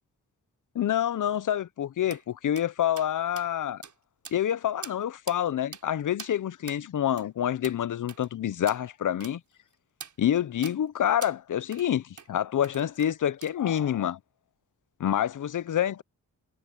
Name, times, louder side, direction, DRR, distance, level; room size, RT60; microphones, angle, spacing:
voice 1, 0.7-3.8 4.3-9.4 10.2-14.2 15.0-16.0, left 10 dB, 60° left, 0.7 m, -27 dB
sound 1, 2.1-2.2 2.6-2.7 3.0-3.1 3.4-3.5 3.8-3.9 4.2-4.5 4.8-5.0 5.3-5.4 5.7-5.8 6.2-6.3 6.7-6.8 7.2-7.3 7.6-7.8 8.1-8.3 8.7-8.8 9.2-9.3 10.0-10.1 10.6-10.8 11.2-11.4 11.7-11.9 12.2-12.3 12.6-13.1 13.4-13.8, right 6 dB, 55° right, 4.0 m, -43 dB
cardioid pair, 85°, 35 cm